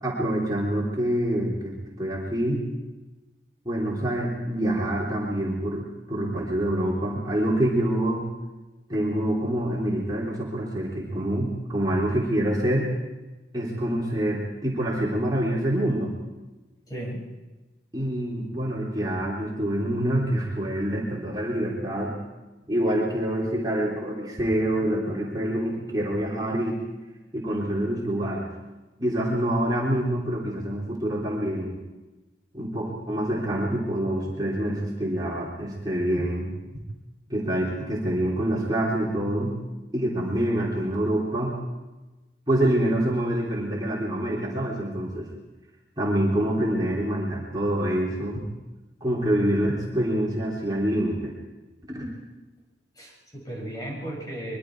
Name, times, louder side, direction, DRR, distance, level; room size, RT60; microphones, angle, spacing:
voice 1, 0.0-2.6 3.7-8.2 8.9-12.9 13.5-16.1 17.9-22.2 22.7-26.8 27.3-28.5 29.0-31.8 32.5-36.5 37.3-39.6 39.9-41.5 42.5-45.3 46.0-48.4 49.0-51.3 51.9-52.1, right 1 dB, 25° right, -4 dB, 3.5 m, -26 dB
voice 2, 16.9-17.2 52.9-54.6, right 1 dB, 20° left, -2 dB, 6.7 m, -35 dB
23.5 x 23.0 x 4.7 m, 1.1 s
head